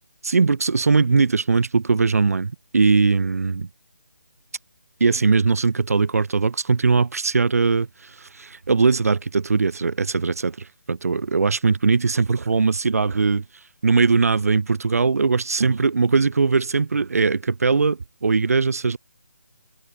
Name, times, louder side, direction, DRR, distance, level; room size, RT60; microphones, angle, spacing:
voice 1, 0.2-3.7 5.0-10.6 10.9-13.4 13.8-19.0, right 4 dB, 60° right, 6.8 m, -20 dB
hypercardioid pair, 165°, 9 cm